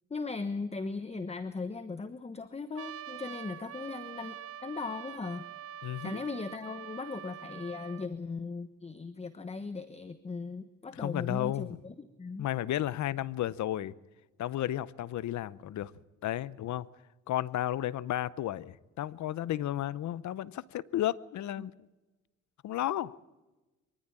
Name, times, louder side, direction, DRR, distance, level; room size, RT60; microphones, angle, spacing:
voice 1, 0.1-5.4 6.0-12.5 21.6-21.7, left 4 dB, 20° left, 12 dB, 1.1 m, -38 dB
Trumpet, 2.8-8.1, right 10 dB, 50° right, 0.9 m, -45 dB
voice 2, 5.8-6.2 10.9-11.8 12.4-13.9 14.4-15.9 16.2-16.9 17.3-21.7 22.6-23.2, left 13 dB, 70° left, 20 dB, 0.8 m, -33 dB
24.0 x 14.0 x 8.9 m, 1.1 s
cardioid pair, 90°, 30 cm